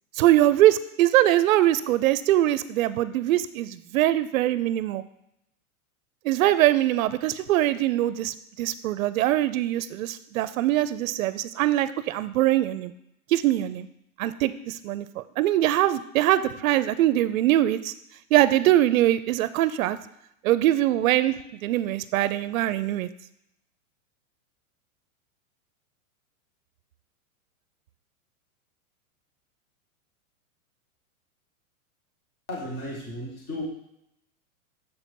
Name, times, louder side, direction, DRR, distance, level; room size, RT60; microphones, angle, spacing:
voice 1, 0.2-5.0 6.2-12.9 13.3-13.9 14.2-17.9 18.3-20.0 20.4-21.4 21.6-23.1, right 14 dB, 65° right, 14 dB, 0.5 m, -22 dB
voice 2, 32.5-33.6, left 1 dB, 10° left, -3 dB, 0.4 m, -34 dB
6.5 x 4.3 x 4.5 m, 0.80 s
supercardioid pair, 165°, 43 cm